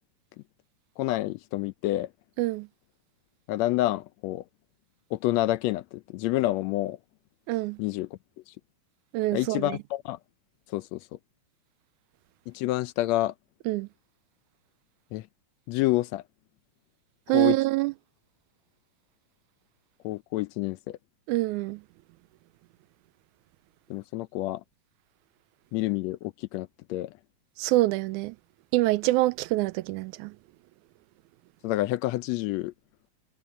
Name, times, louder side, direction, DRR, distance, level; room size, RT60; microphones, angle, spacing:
voice 1, 1.0-2.1 3.5-4.4 5.1-7.0 7.8-8.1 9.3-10.2 10.7-11.0 12.5-13.3 15.1-15.2 15.7-16.2 17.3-17.6 20.0-21.0 23.9-24.6 25.7-27.1 31.6-32.7, left 16 dB, 75° left, 1.7 m, -28 dB
voice 2, 7.5-7.8 9.1-9.8 13.7-13.9 17.3-17.9 21.3-21.8 27.6-28.4 28.7-30.4, right 19 dB, 85° right, 2.0 m, -25 dB
omnidirectional pair, 3.4 m